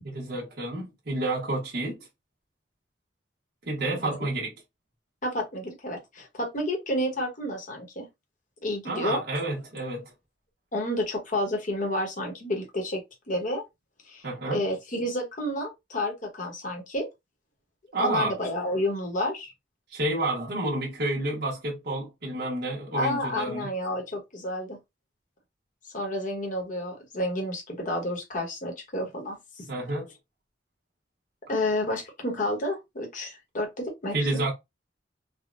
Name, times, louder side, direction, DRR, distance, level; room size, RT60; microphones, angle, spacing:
voice 1, 0.0-2.0 3.7-4.5 8.8-10.1 14.2-14.6 17.9-18.4 19.9-23.7 29.7-30.1 34.1-34.5, right 2 dB, 60° right, 0.9 m, -29 dB
voice 2, 3.8-4.2 5.2-8.1 8.6-9.2 10.7-13.0 13.3-13.6 14.1-17.1 18.0-19.5 22.9-24.8 25.9-29.7 31.5-34.4, left 1 dB, 45° left, 1.0 m, -30 dB
3.5 x 2.1 x 2.5 m
head